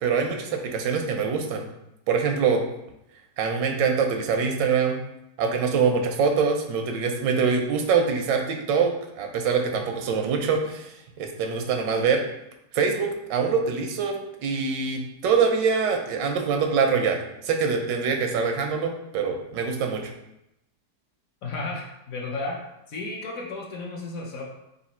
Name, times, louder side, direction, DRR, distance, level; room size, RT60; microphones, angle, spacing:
voice 1, 0.0-1.7 2.1-2.6 3.4-5.0 5.4-12.2 12.7-20.1, right 5 dB, 85° right, 3 dB, 1.3 m, -24 dB
voice 2, 21.4-22.6 22.9-24.5, left 3 dB, 60° left, -2 dB, 1.0 m, -33 dB
4.0 x 2.5 x 4.2 m, 0.85 s
omnidirectional pair, 1.8 m